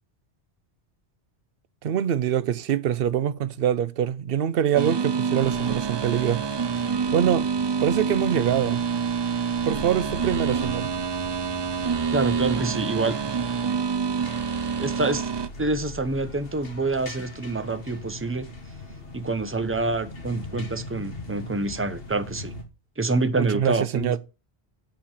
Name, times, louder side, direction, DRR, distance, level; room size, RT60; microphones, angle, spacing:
voice 1, 1.8-6.4 7.1-7.5 7.8-8.8 9.6-10.9 23.4-24.2, right 9 dB, 65° right, 0.8 m, -24 dB
sound 1, 4.7-15.5, right 6 dB, 40° right, 0.4 m, -27 dB
sound 2, 5.4-22.6, left 2 dB, 60° left, 1.7 m, -41 dB
voice 2, 12.1-13.3 14.8-15.3 15.6-18.5 19.1-22.5 23.0-24.2, right 3 dB, 15° right, 0.8 m, -27 dB
8.8 x 4.5 x 7.3 m
omnidirectional pair, 1.1 m